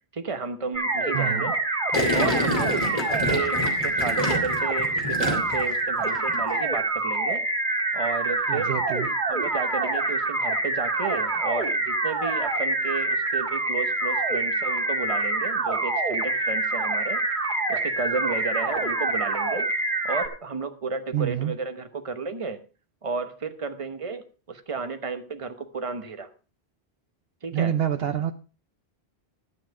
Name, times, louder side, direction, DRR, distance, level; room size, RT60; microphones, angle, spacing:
voice 1, 0.1-1.6 2.1-7.4 7.9-8.7 9.3-17.2 17.7-19.7 20.0-22.6 23.0-26.3 27.4-27.8, right 4 dB, 30° right, 8 dB, 1.1 m, -32 dB
sound 1, 0.7-20.3, right 2 dB, 50° right, 2.5 m, -26 dB
voice 2, 1.1-1.5 8.5-9.1 21.1-21.5 27.5-28.3, right 10 dB, 70° right, 10 dB, 0.9 m, -27 dB
Gurgling, 1.9-5.7 6.0-6.4, left 1 dB, 35° left, 2.6 m, -27 dB
12.0 x 8.8 x 4.6 m, 0.35 s
omnidirectional pair, 1.1 m